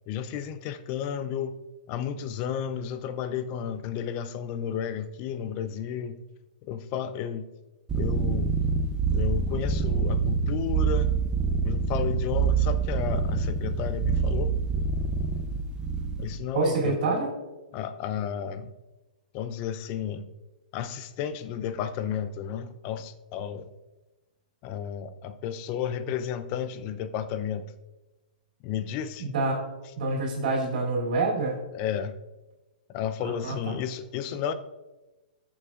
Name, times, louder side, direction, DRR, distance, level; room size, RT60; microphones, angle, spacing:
voice 1, 0.1-1.6 1.9-6.2 6.7-7.5 7.9-8.5 9.1-11.1 11.6-14.5 16.2-16.9 17.7-18.7 19.3-20.3 20.7-23.7 24.6-27.7 28.6-29.3 31.7-32.2 32.9-34.5, left 8 dB, 40° left, 11 dB, 0.6 m, -32 dB
sound 1, 7.9-16.4, right 5 dB, 15° right, 0.8 m, -26 dB
voice 2, 16.5-17.3 29.2-29.6 29.9-31.6 33.2-33.8, right 3 dB, 60° right, -3 dB, 2.8 m, -27 dB
14.0 x 7.2 x 2.5 m, 1.1 s
hypercardioid pair, 125°, 5 cm